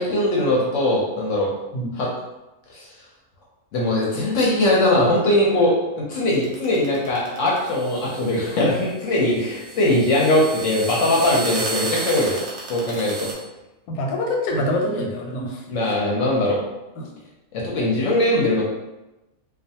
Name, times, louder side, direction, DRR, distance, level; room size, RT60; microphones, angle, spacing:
voice 1, 0.0-1.5 1.9-2.1 2.7-2.9 3.7-12.4 12.7-13.3 15.7-16.6 17.6-18.6, left 1 dB, 65° left, -4 dB, 0.8 m, -20 dB
sound 1, 6.3-13.3, right 4 dB, 60° right, 0.8 m, -33 dB
voice 2, 13.9-16.0 17.0-17.1, left 1 dB, 90° left, 1 dB, 1.1 m, -26 dB
2.4 x 2.2 x 2.7 m, 1.0 s
omnidirectional pair, 1.6 m